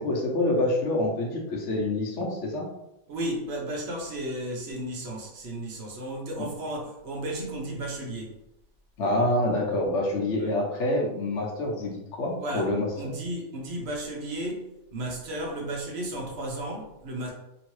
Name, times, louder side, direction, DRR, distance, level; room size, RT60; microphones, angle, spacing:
voice 1, 0.0-2.7 6.4-6.5 9.0-13.1, left 1 dB, 75° left, -1 dB, 1.1 m, -27 dB
voice 2, 3.1-8.4 10.4-10.5 12.4-17.3, right 1 dB, 65° right, 0 dB, 1.0 m, -34 dB
3.0 x 2.8 x 3.0 m, 0.86 s
omnidirectional pair, 1.2 m